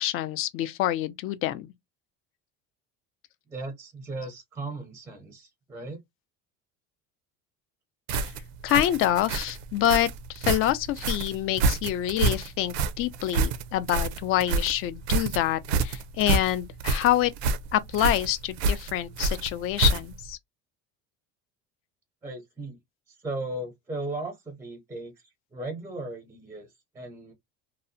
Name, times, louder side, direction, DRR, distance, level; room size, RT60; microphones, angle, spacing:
voice 1, 0.0-1.7 8.1-8.3 8.6-17.3 17.7-20.4, left 12 dB, 45° left, 0.4 m, -26 dB
voice 2, 3.5-6.0 22.2-22.8 23.1-25.1 25.5-27.3, right 2 dB, 10° right, 0.5 m, -37 dB
sound 1, 8.1-20.3, right 3 dB, 85° right, 0.5 m, -28 dB
2.7 x 2.0 x 2.6 m
cardioid pair, 150°, 32 cm